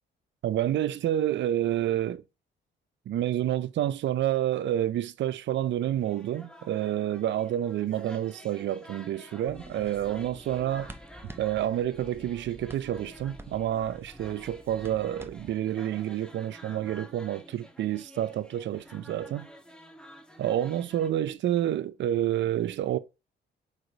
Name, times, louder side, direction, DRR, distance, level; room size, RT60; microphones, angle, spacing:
voice 1, 0.4-2.2 3.1-10.9 11.4-19.5 20.4-23.0, right 12 dB, 65° right, 0.6 m, -29 dB
sound 1, 6.0-21.1, equal, 5° left, 1.0 m, -50 dB
sound 2, 9.5-15.5, right 1 dB, 10° right, 0.6 m, -48 dB
4.9 x 4.8 x 3.9 m
cardioid pair, 90°, 20 cm